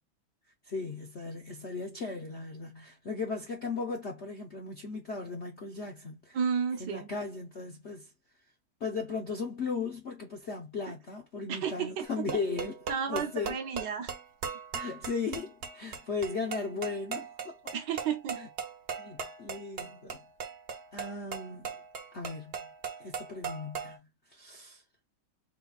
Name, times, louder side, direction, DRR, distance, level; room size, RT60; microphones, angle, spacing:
voice 1, 0.6-6.4 6.8-8.1 8.8-12.8 13.1-13.6 14.7-17.6 18.3-18.5 19.0-20.2 20.9-21.7 22.1-22.7 23.0-24.0 24.3-24.8, left 4 dB, 60° left, 0.7 m, -37 dB
voice 2, 6.3-7.1 11.5-12.1 12.9-14.1 17.7-18.4, right 7 dB, 70° right, 1.3 m, -32 dB
sound 1, 12.0-24.0, right 6 dB, 55° right, 0.8 m, -39 dB
4.4 x 2.2 x 4.0 m
omnidirectional pair, 2.2 m